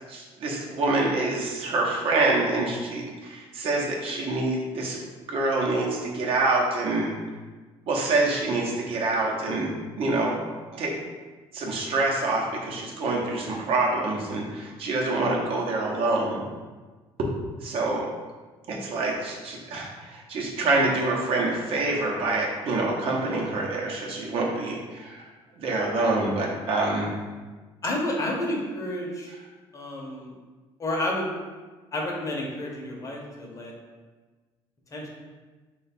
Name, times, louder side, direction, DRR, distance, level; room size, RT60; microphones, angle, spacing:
voice 1, 0.1-5.0 5.3-7.1 7.9-9.7 10.0-10.3 10.7-10.9 11.5-16.4 17.6-18.1 18.7-25.3 25.6-27.1, right 2 dB, 60° right, -2 dB, 0.8 m, -26 dB
voice 2, 27.8-29.3 29.7-30.3 30.8-31.3 31.9-33.7 34.9-35.1, left 1 dB, 30° left, -1 dB, 0.7 m, -30 dB
3.1 x 2.3 x 4.2 m, 1.3 s
cardioid pair, 130°, 10 cm